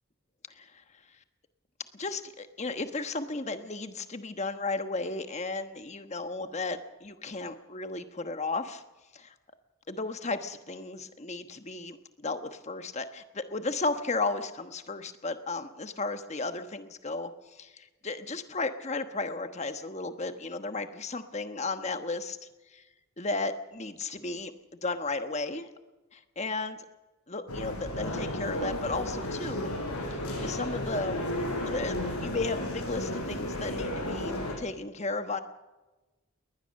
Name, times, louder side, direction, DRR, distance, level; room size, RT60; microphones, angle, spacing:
voice 1, 1.9-8.8 9.1-9.3 9.9-17.3 17.6-22.4 22.7-22.8 23.2-24.5 24.8-25.7 26.1-26.8 27.3-29.7 30.1-31.2 31.7-35.4, left 3 dB, 30° left, 8 dB, 1.2 m, -34 dB
sound 1, 27.5-34.5, left 1 dB, 85° left, 6.5 m, -33 dB
21.0 x 19.0 x 6.5 m, 1.1 s
head